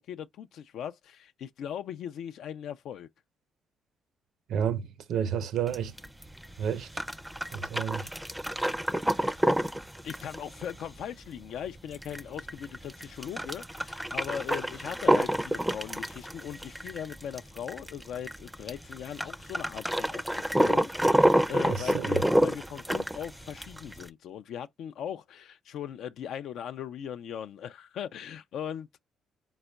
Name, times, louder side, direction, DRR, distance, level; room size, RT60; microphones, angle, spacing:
voice 1, 0.0-3.1 10.0-20.2 20.5-29.0, left 9 dB, 75° left, 0.3 m, -39 dB
voice 2, 4.5-5.9 6.6-6.9 7.5-8.1 21.7-22.2, right 8 dB, 75° right, 0.6 m, -31 dB
sound 1, 5.7-24.1, right 1 dB, 5° right, 0.4 m, -29 dB
4.3 x 4.0 x 2.2 m
cardioid pair, 90°, 0 cm